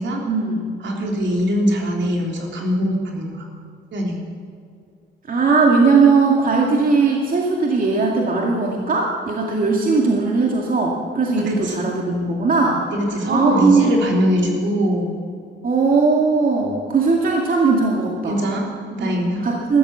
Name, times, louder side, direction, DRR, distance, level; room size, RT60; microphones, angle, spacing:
voice 1, 0.3-0.7 5.3-12.8 13.2-13.9 15.6-18.4 19.0-19.1 19.4-19.8, right 4 dB, 45° right, -1 dB, 2.2 m, -18 dB
voice 2, 0.8-3.5 3.9-4.2 11.5-11.8 12.9-15.1 18.2-19.4, equal, 65° right, 0 dB, 3.7 m, -22 dB
14.5 x 13.0 x 7.3 m, 2.4 s
cardioid pair, 90°, 20 cm